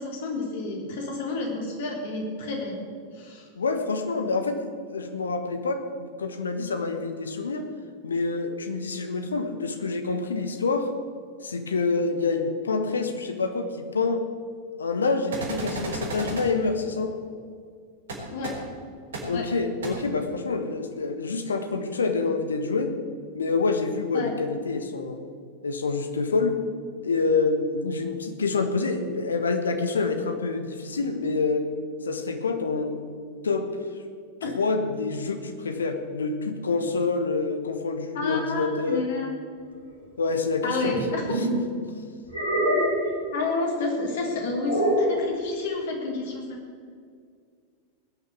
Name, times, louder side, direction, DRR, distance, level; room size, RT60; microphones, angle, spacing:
voice 1, 0.0-2.8 3.1-3.5 18.3-18.6 19.3-19.5 24.1-24.3 34.4-34.5 38.1-39.3 40.6-41.5 43.3-46.4, left 3 dB, 55° left, 0 dB, 3.8 m, -30 dB
voice 2, 3.5-7.6 8.0-10.9 11.4-14.2 14.8-17.1 19.2-22.9 23.3-25.2 25.6-26.6 27.0-31.7 32.0-33.0 33.4-33.7 34.4-39.0 40.2-41.9, left 4 dB, 70° left, 7 dB, 1.4 m, -27 dB
sound 1, 15.3-16.4 18.1-18.2 18.4-18.5 19.1-19.2 19.8-19.9, right 2 dB, 65° right, 4.2 m, -32 dB
sound 2, 40.8-41.6 42.3-43.2 44.6-45.2, right 1 dB, 90° right, 4.8 m, -24 dB
19.5 x 6.7 x 8.4 m, 2.1 s
figure-of-eight pair, 90°, 0 cm